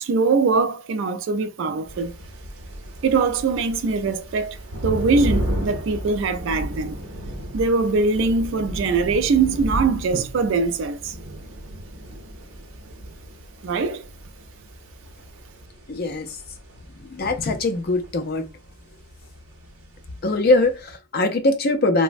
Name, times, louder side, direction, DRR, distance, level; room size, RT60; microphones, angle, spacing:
voice 1, 0.0-2.1 3.0-7.0 7.5-11.1 13.6-14.1, right 4 dB, 60° right, 0.3 m, -22 dB
sound 1, 1.9-21.0, equal, 75° right, 0.7 m, -34 dB
voice 2, 15.9-16.4 17.0-18.4 20.2-22.0, left 2 dB, 45° left, 0.4 m, -22 dB
3.1 x 2.0 x 2.5 m
head